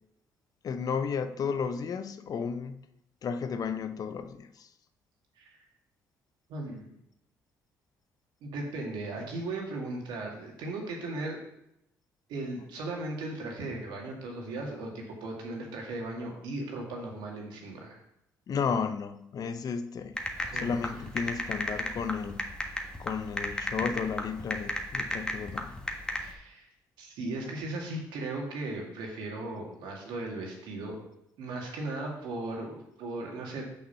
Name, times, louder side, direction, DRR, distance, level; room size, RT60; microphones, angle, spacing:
voice 1, 0.6-2.8 3.2-4.7 18.5-20.2 20.6-22.5 23.0-25.8, left 6 dB, 55° left, 10 dB, 0.7 m, -33 dB
voice 2, 6.5-6.9 8.4-11.4 12.3-18.0 20.4-20.9 26.2-26.7 27.0-31.0 31.4-33.7, right 2 dB, 75° right, 0 dB, 2.1 m, -37 dB
sound 1, 20.2-26.3, left 1 dB, 10° left, 1.5 m, -34 dB
6.4 x 5.7 x 5.7 m, 0.82 s
supercardioid pair, 65°, 8 cm